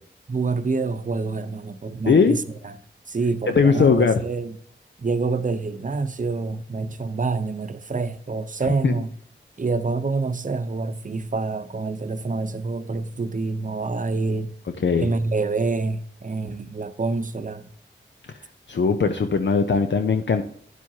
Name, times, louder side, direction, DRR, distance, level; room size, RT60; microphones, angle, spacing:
voice 1, 0.3-2.8 3.1-4.6 5.0-9.1 9.6-14.5 15.0-17.7, right 3 dB, 40° right, 0.8 m, -27 dB
voice 2, 2.1-2.4 3.5-4.2 8.8-8.9 14.8-15.1 18.3-18.4 18.7-20.4, left 5 dB, 65° left, 0.7 m, -19 dB
10.0 x 7.4 x 2.8 m
cardioid pair, 50°, 20 cm